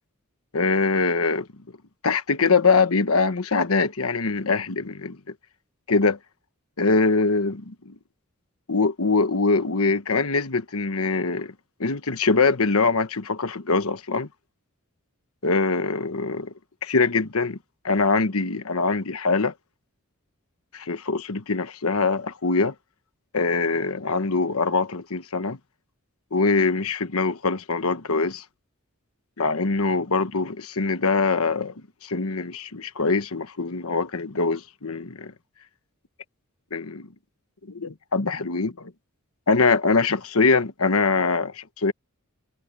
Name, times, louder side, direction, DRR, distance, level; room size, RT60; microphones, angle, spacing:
voice 1, 0.5-1.5 2.0-5.2 5.9-6.2 6.8-7.9 8.7-11.5 11.8-14.3 15.4-16.5 16.8-17.6 17.8-19.5 20.7-22.7 23.3-25.6 26.3-28.4 29.4-31.7 32.0-35.3 36.7-37.1 37.8-38.9 39.5-41.9, left 4 dB, 75° left, 1.2 m, -23 dB
head